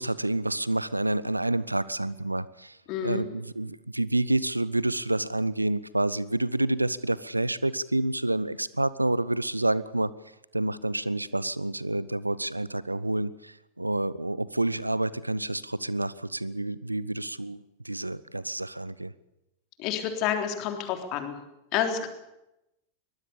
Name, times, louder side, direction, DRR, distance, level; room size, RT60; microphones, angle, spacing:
voice 1, 0.0-2.8 3.0-10.1 10.5-19.1, right 2 dB, 85° right, 19 dB, 0.7 m, -28 dB
voice 2, 2.9-3.2 19.8-21.3 21.7-22.1, left 9 dB, 40° left, 5 dB, 3.6 m, -29 dB
23.0 x 19.5 x 7.0 m, 0.89 s
figure-of-eight pair, 90°, 0 cm